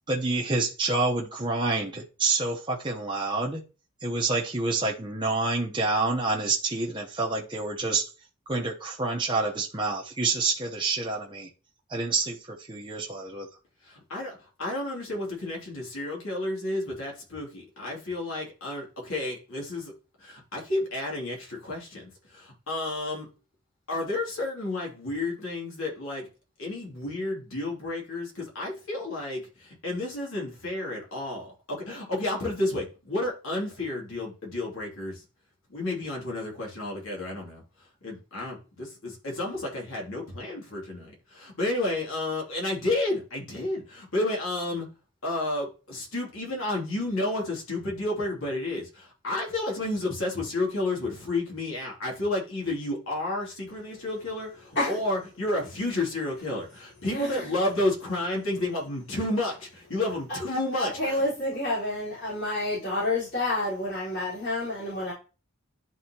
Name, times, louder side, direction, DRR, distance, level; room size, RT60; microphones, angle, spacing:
voice 1, 0.1-3.6 4.0-8.1 8.5-11.5 11.9-13.5, right 3 dB, 20° right, -2 dB, 0.9 m, -28 dB
voice 2, 13.8-19.9 20.2-23.3 23.9-26.3 26.6-35.2 35.7-37.6 38.0-44.9 45.2-61.2, left 2 dB, 75° left, -2 dB, 2.7 m, -31 dB
voice 3, 57.1-57.4 60.8-65.1, left 2 dB, 55° left, -11 dB, 4.3 m, -29 dB
11.0 x 4.2 x 2.9 m, 0.33 s
head